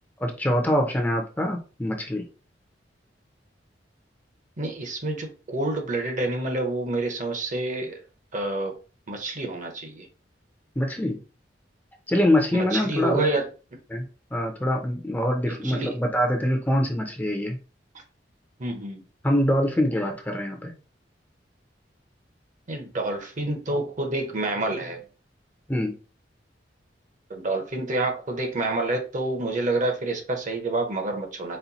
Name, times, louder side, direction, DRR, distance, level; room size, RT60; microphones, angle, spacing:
voice 1, 0.2-2.2 10.8-11.2 12.1-13.2 13.9-14.1 14.3-17.6 19.2-20.7 25.7-26.0, left 1 dB, 10° left, 0.6 m, -24 dB
voice 2, 4.6-8.0 8.3-8.7 9.1-10.1 12.5-13.5 15.6-15.9 18.6-19.0 22.7-25.0 27.3-31.6, right 2 dB, 45° right, 0.8 m, -28 dB
4.2 x 2.2 x 4.0 m
head